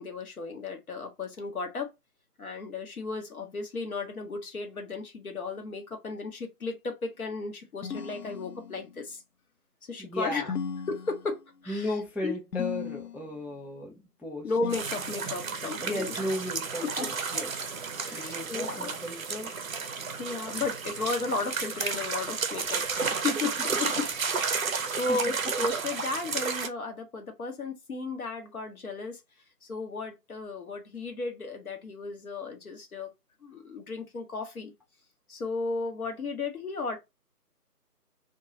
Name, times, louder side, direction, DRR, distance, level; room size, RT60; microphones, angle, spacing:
voice 1, 0.0-1.9 2.4-9.2 9.9-10.5 10.9-11.9 12.2-12.3 14.4-16.2 16.8-17.1 18.0-18.9 20.1-24.1 24.4-29.2 29.6-33.1 33.4-34.7 35.3-37.0, left 3 dB, 60° left, 0.9 m, -34 dB
sound 1, 7.8-9.0 10.5-11.6 12.5-13.4 14.6-15.6, left 7 dB, 80° left, 0.6 m, -37 dB
voice 2, 10.0-10.6 11.7-14.5 15.8-17.7 18.1-19.5 23.1-23.4 24.8-24.9, left 1 dB, 5° right, 0.3 m, -35 dB
sound 2, 14.7-26.7, right 5 dB, 60° right, 0.5 m, -32 dB
2.9 x 2.2 x 2.6 m
figure-of-eight pair, 170°, 48 cm